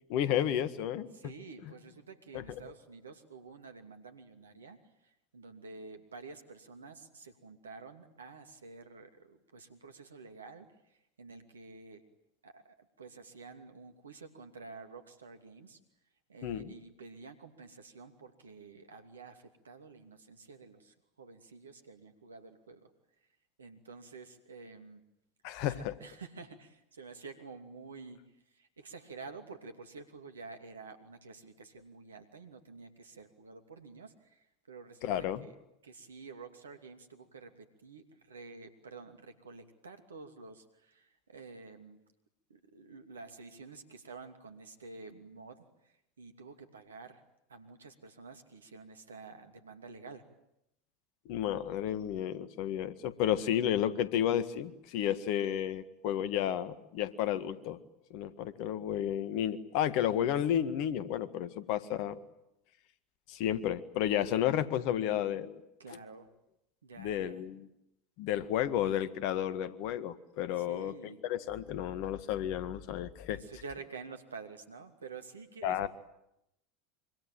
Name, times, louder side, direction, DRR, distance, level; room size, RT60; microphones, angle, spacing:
voice 1, 0.1-1.3 2.3-2.4 16.4-16.7 25.4-25.9 35.0-35.4 51.3-57.8 58.1-62.2 63.3-65.6 67.0-67.7 68.2-70.9 71.2-73.4 75.6-75.9, left 10 dB, 55° left, 14 dB, 1.8 m, -32 dB
voice 2, 1.1-12.0 12.4-15.8 16.3-22.9 23.6-25.0 25.6-28.2 28.5-35.5 35.8-42.0 42.5-47.2 47.5-50.2 65.8-66.3 66.8-67.4 70.6-71.2 73.3-75.9, right 4 dB, 75° right, 7 dB, 2.7 m, -50 dB
26.0 x 25.0 x 9.2 m, 0.83 s
figure-of-eight pair, 80°, 0 cm